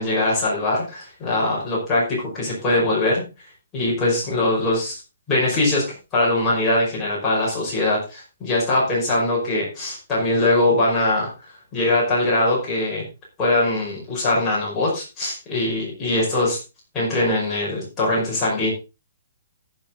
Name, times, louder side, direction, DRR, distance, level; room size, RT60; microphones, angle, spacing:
voice 1, 0.0-3.2 3.7-5.0 5.3-5.8 6.1-11.3 11.7-13.0 13.4-16.6 16.9-18.7, left 2 dB, 10° left, -6 dB, 5.4 m, -22 dB
14.5 x 7.2 x 4.0 m, 0.29 s
hypercardioid pair, 175°, 0 cm